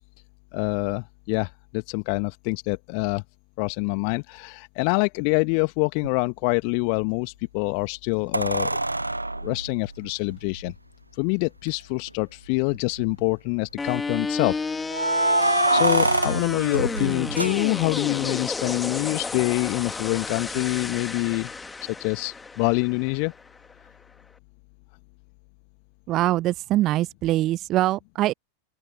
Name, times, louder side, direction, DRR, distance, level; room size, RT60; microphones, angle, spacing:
voice 1, 0.5-3.2 3.6-8.8 9.4-10.7 11.1-14.6 15.7-21.5 22.0-23.3, left 40 dB or more, 45° left, 1.4 m, -26 dB
sound 1, 6.0-6.1 8.3-10.7 11.7-11.8 12.1-12.2 12.7-13.2 14.9-18.1 20.6-20.7, right 2 dB, 85° right, 0.3 m, -25 dB
sound 2, 13.8-23.8, left 4 dB, 10° left, 2.2 m, -32 dB
voice 2, 26.1-28.3, right 15 dB, 35° right, 0.7 m, -23 dB
open air
figure-of-eight pair, 90°, 0 cm